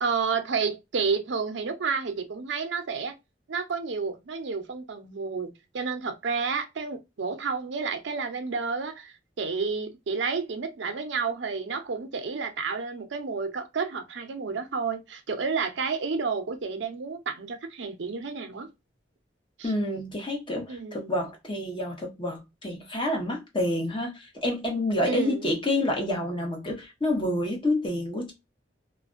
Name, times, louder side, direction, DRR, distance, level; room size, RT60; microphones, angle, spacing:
voice 1, 0.0-3.1 3.5-18.7 19.6-19.7 20.7-21.3 25.0-25.5, right 5 dB, 85° right, 0.5 m, -30 dB
voice 2, 19.6-28.3, left 1 dB, 30° left, 0.9 m, -28 dB
2.4 x 2.2 x 2.3 m
head